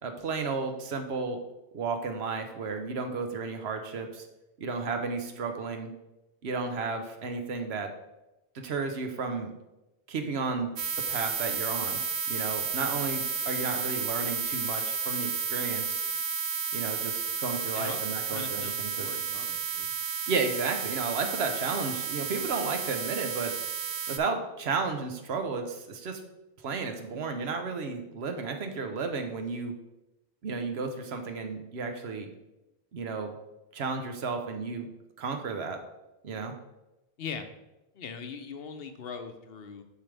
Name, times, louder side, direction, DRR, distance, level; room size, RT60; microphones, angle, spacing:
voice 1, 0.0-1.4 1.7-4.3 4.6-5.9 6.4-7.9 8.6-9.5 10.1-10.7 11.1-12.0 12.3-16.0 16.7-19.1 20.3-23.5 24.1-26.2 26.6-29.7 30.4-32.3 32.9-33.3 33.7-34.9 35.2-35.8 36.2-36.5, right 4 dB, 85° right, 6 dB, 1.1 m, -33 dB
sound 1, 10.8-24.2, right 5 dB, 60° right, 0.7 m, -32 dB
voice 2, 18.3-19.9 37.2-37.5 37.9-39.8, left 6 dB, 70° left, 8 dB, 0.9 m, -40 dB
6.8 x 5.6 x 3.4 m, 0.96 s
omnidirectional pair, 1.0 m